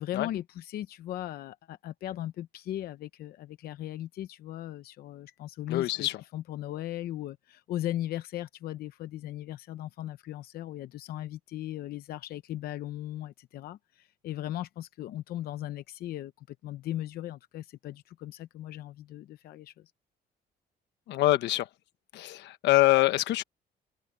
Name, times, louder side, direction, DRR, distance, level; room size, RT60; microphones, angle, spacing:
voice 1, 0.0-19.9, left 13 dB, 60° left, 0.7 m, -38 dB
voice 2, 5.7-6.2 21.1-21.7 22.1-23.4, left 17 dB, 90° left, 1.1 m, -25 dB
cardioid pair, 175°, 17 cm